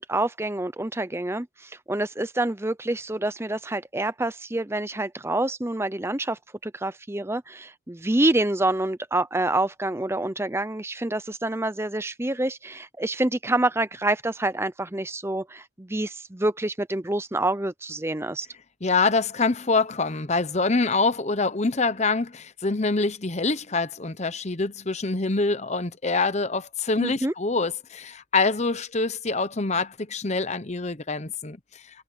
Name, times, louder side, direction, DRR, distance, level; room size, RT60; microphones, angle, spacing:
voice 1, 0.0-18.5 27.0-27.3, right 2 dB, 15° right, 0.7 m, -27 dB
voice 2, 18.8-31.6, left 3 dB, 35° left, 0.9 m, -25 dB
head